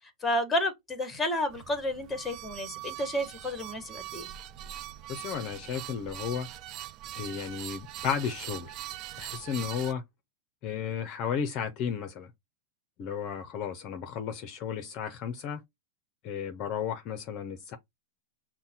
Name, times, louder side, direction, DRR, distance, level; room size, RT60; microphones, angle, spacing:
voice 1, 0.2-4.3, left 1 dB, 10° left, 1.3 m, -31 dB
sound 1, 1.5-9.9, right 13 dB, 35° right, 0.4 m, -42 dB
voice 2, 5.1-6.5 7.2-8.8 9.2-10.0 10.6-12.3 13.0-15.6 16.2-17.8, left 7 dB, 40° left, 0.6 m, -33 dB
5.6 x 2.2 x 4.2 m
supercardioid pair, 140°, 0 cm